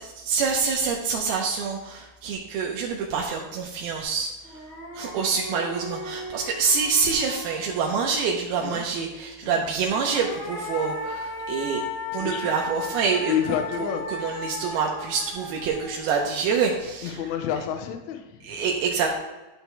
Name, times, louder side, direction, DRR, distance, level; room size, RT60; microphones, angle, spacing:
voice 1, 0.0-4.6 4.9-11.8 12.1-13.4 13.8-17.2 18.4-19.1, right 5 dB, 85° right, -1 dB, 2.7 m, -26 dB
sound 1, 4.0-4.1 4.4-8.1 9.7-17.0, left 1 dB, 35° left, 2.7 m, -36 dB
voice 2, 12.2-12.6 13.3-14.0 17.0-18.6, left 9 dB, 75° left, 6 dB, 1.7 m, -29 dB
12.0 x 6.3 x 3.4 m, 1.1 s
omnidirectional pair, 4.4 m